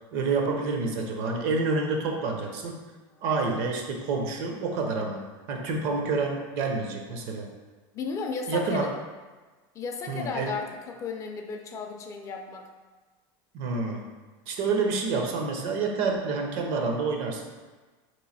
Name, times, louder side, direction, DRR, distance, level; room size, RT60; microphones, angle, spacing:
voice 1, 0.1-2.8 3.2-7.5 8.5-8.9 10.1-10.6 13.5-14.1 14.5-17.5, right 4 dB, 60° right, 2 dB, 0.6 m, -28 dB
voice 2, 7.9-8.9 9.7-12.7, left 4 dB, 30° left, 3 dB, 0.3 m, -34 dB
3.1 x 2.6 x 4.0 m, 1.3 s
supercardioid pair, 135°, 11 cm